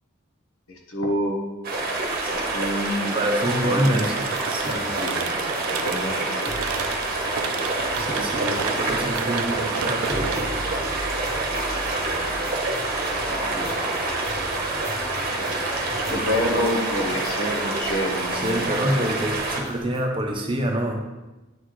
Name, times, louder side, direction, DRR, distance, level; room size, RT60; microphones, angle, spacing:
voice 1, 0.7-1.4 2.3-3.2 3.6-4.1 4.9-6.6 13.1-13.9 16.1-18.7, equal, 85° left, 1 dB, 1.2 m, -28 dB
sound 1, 1.6-19.8, right 2 dB, 45° right, 1.0 m, -27 dB
voice 2, 3.1-4.1 4.5-4.9 8.0-10.6 18.3-21.0, right 1 dB, 25° right, 2 dB, 0.7 m, -26 dB
sound 2, 3.8-12.4, right 7 dB, 85° right, 0.4 m, -33 dB
sound 3, 4.3-20.0, right 1 dB, ahead, 2.0 m, -40 dB
9.1 x 4.0 x 3.1 m, 1.1 s
head